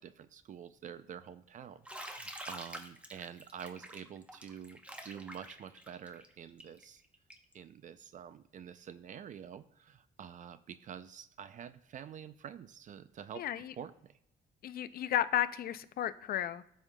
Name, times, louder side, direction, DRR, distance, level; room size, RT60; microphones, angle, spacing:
voice 1, 0.0-7.0 7.5-13.5 13.8-14.2, right 8 dB, 45° right, 13 dB, 0.4 m, -48 dB
Bathtub (filling or washing), 1.9-7.5, right 1 dB, 5° right, 0.8 m, -47 dB
voice 2, 13.4-13.7 14.6-16.6, left 11 dB, 60° left, 13 dB, 0.4 m, -33 dB
12.5 x 5.5 x 2.2 m, 0.78 s
cardioid pair, 125°, 17 cm